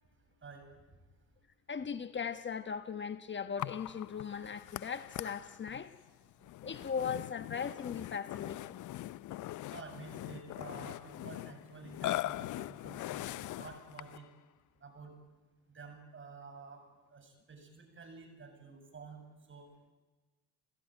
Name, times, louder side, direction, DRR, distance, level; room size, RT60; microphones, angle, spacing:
voice 1, 1.7-5.9 6.6-8.8, left 6 dB, 30° left, 11 dB, 1.2 m, -38 dB
Burping eructation, 3.6-14.3, left 15 dB, 55° left, 0.7 m, -42 dB
voice 2, 9.7-14.3 14.8-15.1 15.7-16.8 17.1-19.2 19.5-19.7, right 4 dB, 35° right, 5 dB, 7.4 m, -50 dB
29.5 x 15.0 x 9.2 m, 1.2 s
supercardioid pair, 75°, 35 cm